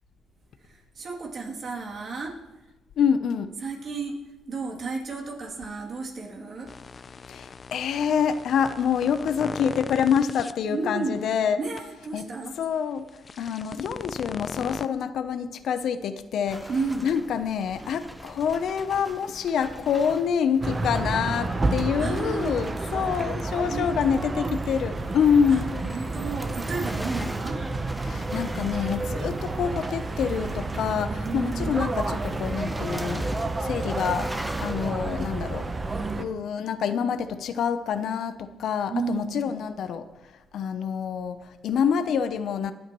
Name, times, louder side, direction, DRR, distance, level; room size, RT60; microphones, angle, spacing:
voice 1, 0.6-2.3 3.5-4.1 4.5-6.7 10.7-11.2 11.6-12.5 16.7-17.1 22.0-22.6 23.6-24.6 25.2-27.6 31.1-31.8 35.9-36.3 38.9-39.5, right 4 dB, 50° right, -1 dB, 2.8 m, -33 dB
voice 2, 3.0-3.5 7.3-13.1 13.4-26.1 28.0-33.3 33.6-35.7 36.2-40.1 40.5-42.7, left 7 dB, 70° left, 11 dB, 0.7 m, -27 dB
sound 1, 6.7-10.5 11.1-11.3 11.8-11.9 13.1-14.9, left 5 dB, 35° left, 0.4 m, -38 dB
sound 2, 16.5-34.9, equal, 5° right, 1.0 m, -42 dB
sound 3, 20.6-36.2, right 2 dB, 30° right, 0.9 m, -30 dB
25.0 x 8.9 x 3.1 m, 1.1 s
cardioid pair, 90°, 0 cm